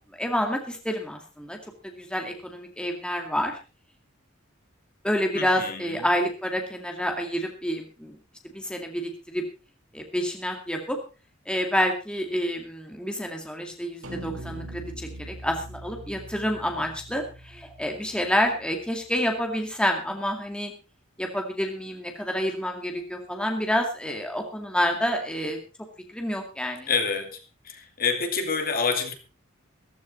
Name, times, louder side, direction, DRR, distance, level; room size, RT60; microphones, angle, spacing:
voice 1, 0.2-1.6 1.8-3.6 5.0-8.2 8.4-9.4 9.9-11.0 11.5-20.7 21.2-25.6 26.1-26.9, equal, 5° left, 3 dB, 2.2 m, -28 dB
voice 2, 5.3-6.0 26.9-29.1, left 5 dB, 45° left, 6 dB, 2.5 m, -28 dB
sound 1, 14.0-18.5, right 1 dB, 80° right, 4.6 m, -41 dB
14.5 x 14.0 x 4.1 m, 0.33 s
head